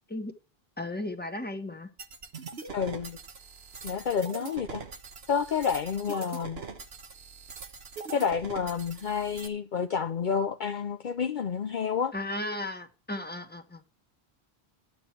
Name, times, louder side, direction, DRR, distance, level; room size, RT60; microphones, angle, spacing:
voice 1, 0.8-1.9 12.1-13.8, left 1 dB, 10° left, 1.5 m, -35 dB
sound 1, 2.0-9.5, right 4 dB, 80° right, 1.5 m, -42 dB
voice 2, 2.7-3.2 3.8-4.8 5.3-6.6 8.1-12.1, left 6 dB, 55° left, 0.8 m, -29 dB
12.0 x 9.0 x 4.5 m
omnidirectional pair, 1.0 m